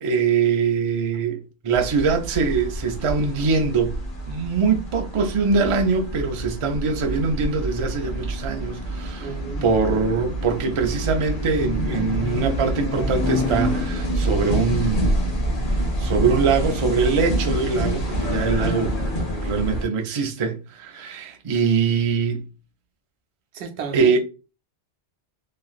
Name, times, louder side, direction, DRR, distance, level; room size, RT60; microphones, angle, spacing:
voice 1, 0.0-4.0 4.3-9.3 9.6-15.3 16.0-19.0 19.4-22.5 23.9-24.2, right 5 dB, 50° right, 0.4 m, -23 dB
sound 1, 1.7-19.8, equal, 55° left, 1.0 m, -27 dB
voice 2, 9.2-9.7 23.5-24.2, right 6 dB, 85° right, 0.9 m, -33 dB
2.9 x 2.4 x 2.3 m
omnidirectional pair, 1.1 m